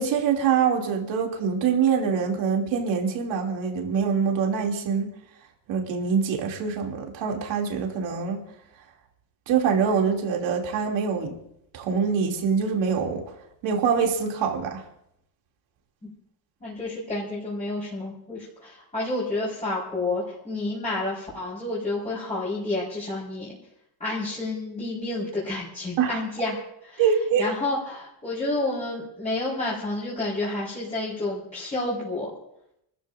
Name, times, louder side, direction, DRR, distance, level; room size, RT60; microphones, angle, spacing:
voice 1, 0.0-5.1 5.7-8.4 9.5-11.3 11.7-13.2 13.6-14.8 26.0-26.2 27.0-27.5, right 6 dB, 80° right, 0 dB, 2.9 m, -24 dB
voice 2, 16.6-23.6 24.0-27.0 27.4-32.3, left 2 dB, 15° left, -8 dB, 4.7 m, -30 dB
30.0 x 14.0 x 2.6 m, 0.79 s
cardioid pair, 145°, 44 cm